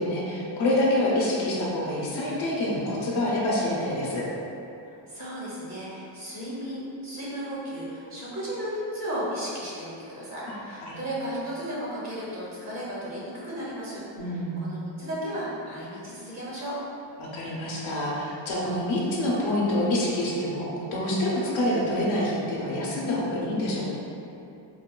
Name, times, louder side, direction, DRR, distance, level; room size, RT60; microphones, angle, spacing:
voice 1, 0.0-4.2 10.5-10.6 10.8-11.0 14.2-14.7 17.2-23.9, left 1 dB, 85° left, -5 dB, 0.7 m, -27 dB
voice 2, 5.1-14.0 14.6-16.8, equal, 35° right, -7 dB, 0.7 m, -34 dB
3.4 x 2.2 x 2.2 m, 2.7 s
wide cardioid pair, 155°, 45 cm